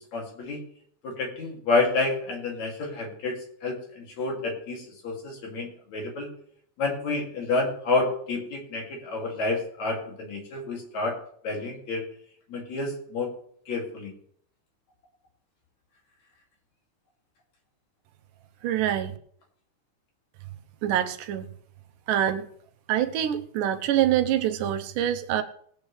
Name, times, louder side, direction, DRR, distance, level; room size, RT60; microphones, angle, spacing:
voice 1, 0.1-0.6 1.0-6.3 6.8-11.2 11.4-12.0 12.5-13.3 13.7-14.1, left 3 dB, 60° left, 0 dB, 3.7 m, -29 dB
voice 2, 18.6-19.1 20.8-21.5 22.1-22.5 22.9-25.4, right 11 dB, 85° right, 8 dB, 2.4 m, -25 dB
20.0 x 8.7 x 3.2 m, 0.63 s
omnidirectional pair, 3.6 m